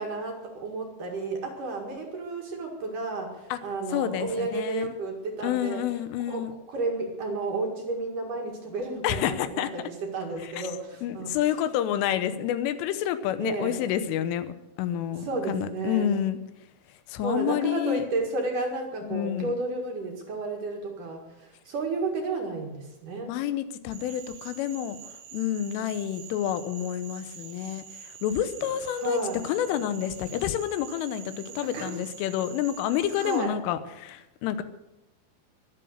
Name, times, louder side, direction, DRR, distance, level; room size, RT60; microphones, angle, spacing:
voice 1, 0.0-5.8 6.3-11.3 13.4-13.8 15.2-16.1 17.2-23.3 29.0-29.4 31.7-31.9 33.2-33.5, right 3 dB, 55° right, 1 dB, 3.0 m, -32 dB
voice 2, 3.9-4.9 5.4-6.6 9.0-9.7 10.4-10.7 11.0-14.5 14.8-16.4 17.1-18.0 19.0-19.5 23.3-25.0 25.3-34.6, left 10 dB, 90° left, 11 dB, 3.5 m, -29 dB
Cricket / Frog, 23.9-33.4, right 8 dB, 85° right, 4.4 m, -45 dB
22.5 x 7.9 x 6.6 m, 0.95 s
omnidirectional pair, 5.6 m